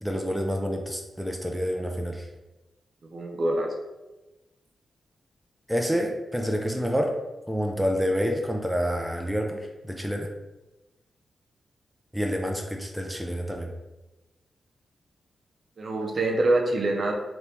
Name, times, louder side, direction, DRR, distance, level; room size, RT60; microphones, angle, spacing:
voice 1, 0.0-2.3 5.7-7.1 7.5-10.3 12.1-13.7, equal, ahead, 1 dB, 0.4 m, -28 dB
voice 2, 3.0-3.7 15.8-17.1, right 2 dB, 55° right, 1 dB, 0.6 m, -25 dB
2.9 x 2.7 x 3.4 m, 1.1 s
cardioid pair, 70°, 0 cm